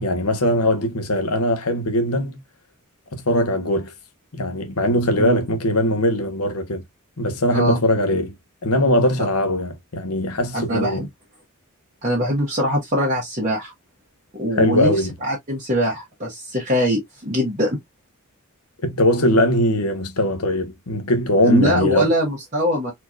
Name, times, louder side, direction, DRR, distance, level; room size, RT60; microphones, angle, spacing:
voice 1, 0.0-2.4 3.1-3.9 4.3-6.8 7.2-8.3 8.6-11.1 14.6-15.1 18.8-22.1, left 1 dB, 80° left, 1.2 m, -20 dB
voice 2, 10.5-11.1 12.0-13.7 14.3-17.8 21.4-22.9, equal, 35° right, 1.3 m, -22 dB
4.4 x 3.0 x 2.4 m
head